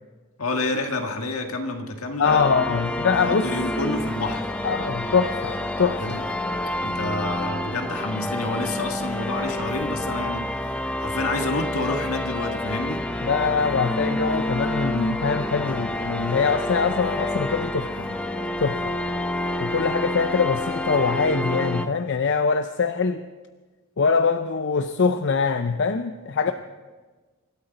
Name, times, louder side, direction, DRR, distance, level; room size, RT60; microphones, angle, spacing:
voice 1, 0.4-2.5 3.2-4.5 6.0-6.2 6.8-10.5 11.0-13.1, left 2 dB, 70° left, 4 dB, 1.7 m, -28 dB
voice 2, 2.2-3.5 4.6-6.2 13.2-18.2 18.6-19.0 19.6-23.2 24.0-26.5, left 5 dB, 55° left, 9 dB, 0.6 m, -23 dB
sound 1, 2.2-21.9, left 1 dB, 5° left, 0.7 m, -28 dB
25.0 x 13.0 x 4.1 m, 1.3 s
head